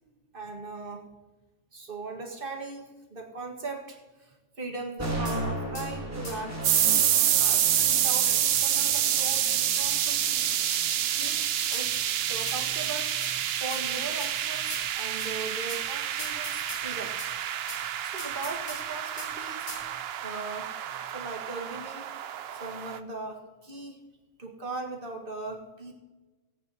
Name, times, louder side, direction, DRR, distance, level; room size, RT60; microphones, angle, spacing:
voice 1, 0.3-1.0 1.7-10.8 11.1-17.2 18.0-20.7 21.0-24.0 24.4-26.0, right 3 dB, 40° right, 1 dB, 1.8 m, -39 dB
sound 1, 5.0-13.0, right 1 dB, 10° right, 1.8 m, -38 dB
sound 2, 5.2-5.4 5.7-5.9 6.2-6.4 6.7-6.9 7.2-7.4 7.7-7.9 8.2-9.4 9.7-9.9 10.2-10.9 11.2-11.4 11.7-11.9 12.5-12.7 13.2-13.4 13.7-13.8 14.2-14.3 14.7-14.9 15.2-15.3 15.7-15.8 16.2-17.3 17.7-17.8 18.2-18.8 19.2-19.3 19.7-19.8, left 1 dB, 85° left, 3.9 m, -40 dB
sound 3, 6.6-23.0, right 10 dB, 65° right, 0.6 m, -28 dB
17.0 x 8.6 x 4.1 m, 1.2 s
omnidirectional pair, 1.5 m